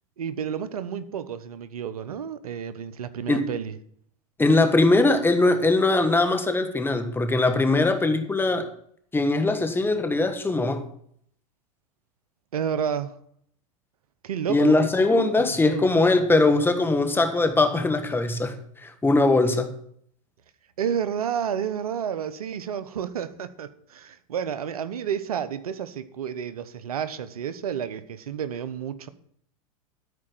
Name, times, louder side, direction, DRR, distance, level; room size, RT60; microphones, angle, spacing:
voice 1, 0.2-3.8 12.5-13.2 14.2-14.8 15.4-15.8 20.8-29.1, right 8 dB, 90° right, 0.9 m, -30 dB
voice 2, 4.4-8.7 9.1-10.9 14.5-19.7, left 2 dB, 10° left, 1.5 m, -21 dB
13.0 x 4.9 x 7.8 m
hypercardioid pair, 105°, 18 cm